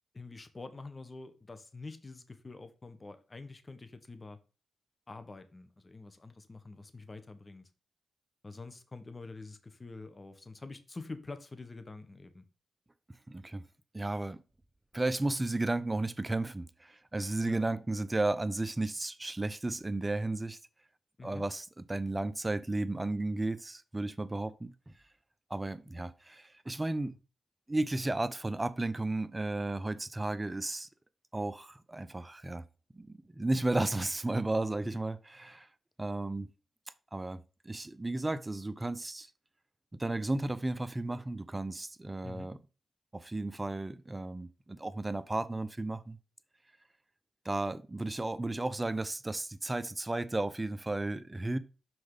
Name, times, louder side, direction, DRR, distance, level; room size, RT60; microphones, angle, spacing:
voice 1, 0.1-4.4 5.1-7.7 8.4-12.5 17.4-17.7 21.2-21.4 42.2-42.5, left 3 dB, 35° left, 1.3 m, -46 dB
voice 2, 13.3-13.6 13.9-14.4 14.9-20.6 21.2-24.9 25.5-27.1 27.7-30.9 31.3-32.6 32.9-35.7 36.0-36.5 37.1-39.3 40.0-42.6 43.1-46.2 47.4-51.6, right 2 dB, 20° right, 0.7 m, -34 dB
6.2 x 4.8 x 5.1 m
cardioid pair, 55°, 0 cm